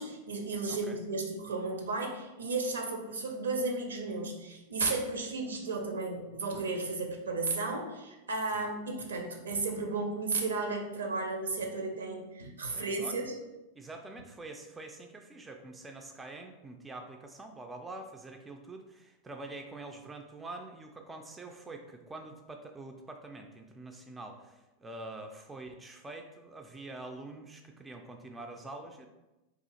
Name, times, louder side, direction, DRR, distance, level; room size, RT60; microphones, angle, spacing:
voice 1, 0.0-13.3, right 3 dB, 70° right, 3 dB, 0.6 m, -34 dB
voice 2, 12.6-13.3 13.7-29.1, right 2 dB, 10° right, 3 dB, 0.3 m, -45 dB
2.8 x 2.4 x 4.0 m, 1.0 s
figure-of-eight pair, 90°, 0 cm